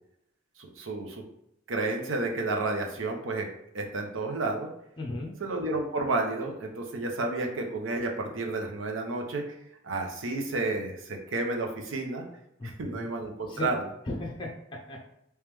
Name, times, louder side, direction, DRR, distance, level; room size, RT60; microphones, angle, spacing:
voice 1, 0.6-1.2 1.7-3.5 3.7-4.7 5.4-9.5 9.8-12.2 12.6-13.8, right 2 dB, 75° right, 2 dB, 0.7 m, -31 dB
voice 2, 5.0-5.3 12.6-13.1 13.5-13.7 14.0-15.1, left 2 dB, 25° left, -2 dB, 0.6 m, -36 dB
3.3 x 3.1 x 3.4 m, 0.79 s
head